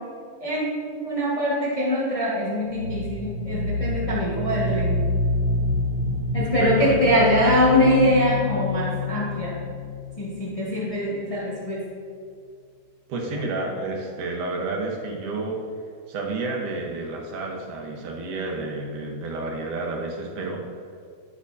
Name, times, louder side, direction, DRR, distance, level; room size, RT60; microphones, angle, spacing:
voice 1, 0.4-5.1 6.3-9.5 10.2-11.8, equal, 30° left, -8 dB, 0.6 m, -23 dB
sound 1, 2.6-11.3, left 2 dB, 55° right, 1.9 m, -27 dB
voice 2, 6.4-7.0 13.1-15.6 16.1-20.7, right 3 dB, 75° right, 0 dB, 2.6 m, -30 dB
10.5 x 8.7 x 2.7 m, 2.2 s
omnidirectional pair, 3.8 m